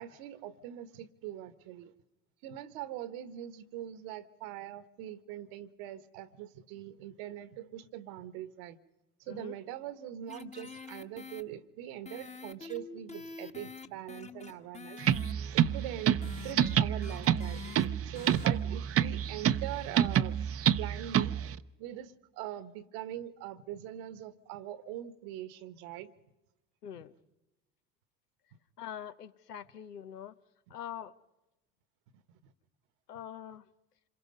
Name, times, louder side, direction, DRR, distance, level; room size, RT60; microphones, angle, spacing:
voice 1, 0.0-1.9 2.4-8.8 9.2-15.0 15.5-21.4 21.8-26.1 26.9-27.1 32.1-32.5, right 12 dB, 65° right, 13 dB, 1.4 m, -42 dB
sound 1, 10.3-11.4 12.1-17.9 18.1-18.5, left 5 dB, 15° left, 1.2 m, -47 dB
sound 2, 15.0-21.5, right 10 dB, 30° right, 0.7 m, -28 dB
voice 2, 26.8-27.1 28.8-30.3 30.7-31.1 33.1-33.6, left 9 dB, 90° left, 12 dB, 0.9 m, -43 dB
26.5 x 22.5 x 5.4 m, 0.99 s
hypercardioid pair, 70°, 45 cm